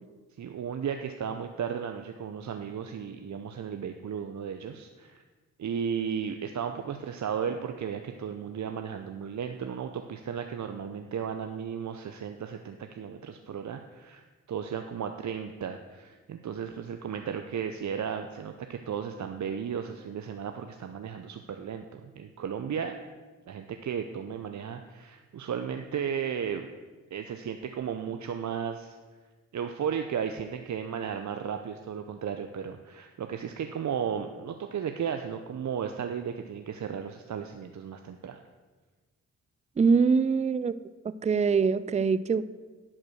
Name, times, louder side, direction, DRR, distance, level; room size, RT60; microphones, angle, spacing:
voice 1, 0.4-5.2 5.6-22.9 23.5-26.7 27.1-29.0 29.5-38.4, right 7 dB, 55° right, 6 dB, 0.7 m, -34 dB
voice 2, 39.8-40.7 41.0-42.4, right 5 dB, 20° right, 15 dB, 0.4 m, -23 dB
11.0 x 5.0 x 6.3 m, 1.3 s
supercardioid pair, 45°, 33 cm